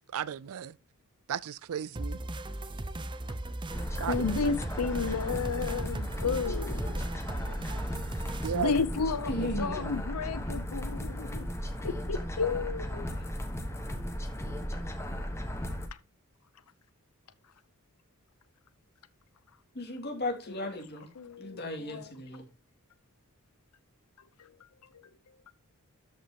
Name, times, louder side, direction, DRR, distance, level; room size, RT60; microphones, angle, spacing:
voice 1, 0.1-0.7 1.3-2.2 4.0-4.2 8.4-8.7 9.4-9.6, right 8 dB, 70° right, 0.4 m, -34 dB
sound 1, 2.0-8.6, right 1 dB, 20° right, 0.6 m, -37 dB
sound 2, 3.7-15.9, equal, 10° left, 1.2 m, -36 dB
voice 2, 4.0-7.0 8.5-11.5 11.8-13.1 21.2-22.1 24.4-24.5, left 5 dB, 85° left, 0.7 m, -32 dB
voice 3, 9.3-10.0 13.1-13.2 19.7-21.1 21.4-22.4, left 1 dB, 50° left, 2.5 m, -36 dB
13.0 x 5.5 x 2.9 m
head